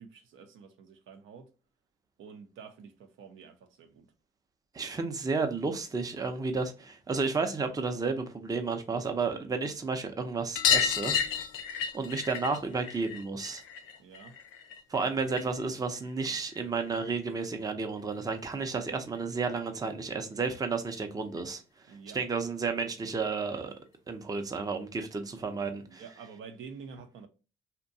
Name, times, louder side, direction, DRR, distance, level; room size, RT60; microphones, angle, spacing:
voice 1, 0.0-1.5 2.2-4.1 14.0-14.4 21.9-22.2 25.3-27.3, right 6 dB, 80° right, 0.6 m, -49 dB
voice 2, 4.7-11.2 11.9-13.6 14.9-21.6 22.1-23.7 24.1-26.0, right 4 dB, 20° right, 0.5 m, -32 dB
sound 1, 10.6-15.7 16.0-17.1 18.5-18.6 18.8-18.9 19.2-19.3 20.6-20.7 20.9-21.0 21.4-21.5 22.7-22.8 23.6-23.7, left 8 dB, 80° left, 0.4 m, -32 dB
2.7 x 2.2 x 2.6 m
cardioid pair, 90°, 20 cm